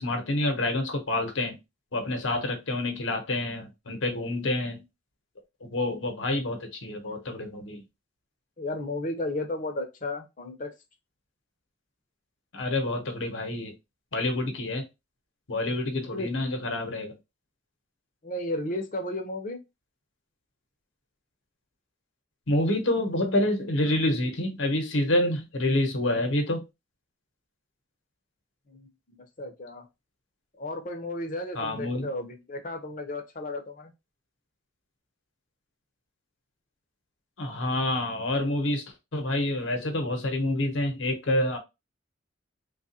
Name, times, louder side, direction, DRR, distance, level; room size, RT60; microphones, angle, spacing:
voice 1, 0.0-1.6 1.9-4.8 5.6-7.8 12.5-13.7 14.1-14.8 15.5-17.1 22.5-26.6 31.5-32.1 37.4-38.8 39.1-41.6, left 1 dB, 85° left, 0.9 m, -27 dB
voice 2, 8.6-10.7 16.1-16.3 18.2-19.6 28.7-29.8 30.6-33.9, left 1 dB, 45° left, 0.7 m, -34 dB
3.3 x 2.3 x 2.8 m
head